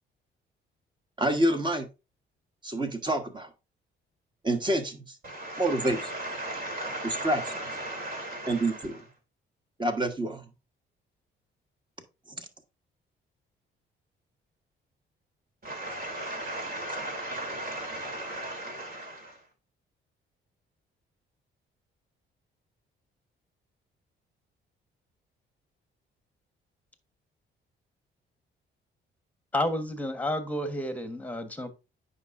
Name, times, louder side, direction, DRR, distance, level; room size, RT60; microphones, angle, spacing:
voice 1, 1.2-1.9 2.6-3.5 4.4-5.2 5.6-6.1 7.0-7.4 8.5-9.0 9.8-10.5 12.4-12.5, right 1 dB, 20° right, 1.4 m, -27 dB
voice 2, 5.2-8.6 15.6-19.3, right 1 dB, 50° right, 3.3 m, -36 dB
voice 3, 29.5-31.7, left 1 dB, 5° left, 1.3 m, -30 dB
9.2 x 5.5 x 2.6 m
cardioid pair, 90°, 20 cm